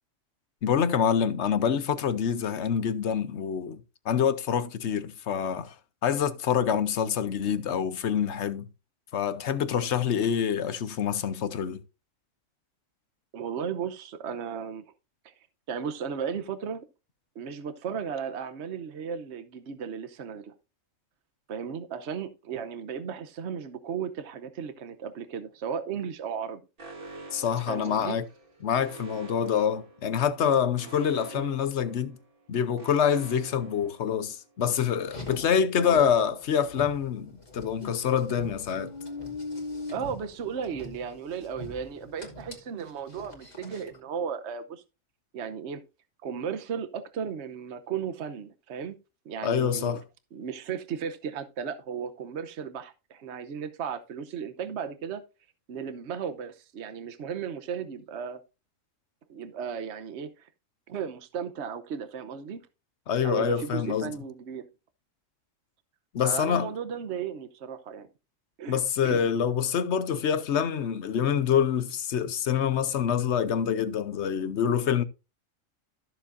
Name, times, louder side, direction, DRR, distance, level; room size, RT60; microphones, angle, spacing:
voice 1, 0.6-5.7 6.0-8.7 9.1-11.8 27.3-28.3 28.6-32.2 32.5-38.9 49.4-50.0 63.1-64.1 66.1-66.7 68.7-75.0, left 8 dB, 60° left, 1.0 m, -26 dB
voice 2, 13.3-14.8 15.2-15.3 15.7-16.9 17.3-20.6 21.5-26.6 27.7-28.2 31.3-31.5 35.8-36.1 39.9-44.8 45.3-45.8 46.2-49.0 49.2-50.0 50.3-55.2 55.7-58.4 59.3-60.5 60.9-62.6 63.2-64.7 66.2-68.1 68.6-68.8 69.0-69.2, right 7 dB, 60° right, 1.1 m, -35 dB
Alarm, 26.8-34.5, right 2 dB, 40° right, 1.9 m, -47 dB
Car, 35.0-44.0, left 2 dB, 30° left, 2.6 m, -42 dB
14.0 x 7.1 x 2.6 m
omnidirectional pair, 1.4 m